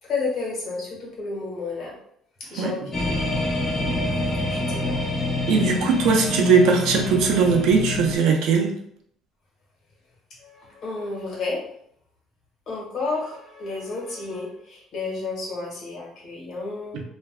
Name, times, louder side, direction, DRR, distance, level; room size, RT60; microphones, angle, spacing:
voice 1, 0.0-2.0 2.5-3.5 4.5-4.9 10.4-11.6 12.7-17.0, left 3 dB, 50° left, -3 dB, 1.3 m, -31 dB
sound 1, 2.9-8.1, left 2 dB, 20° left, 0.7 m, -26 dB
voice 2, 5.5-8.7, right 5 dB, 75° right, 2 dB, 0.6 m, -19 dB
3.3 x 2.5 x 2.3 m, 0.68 s
cardioid pair, 130°, 0 cm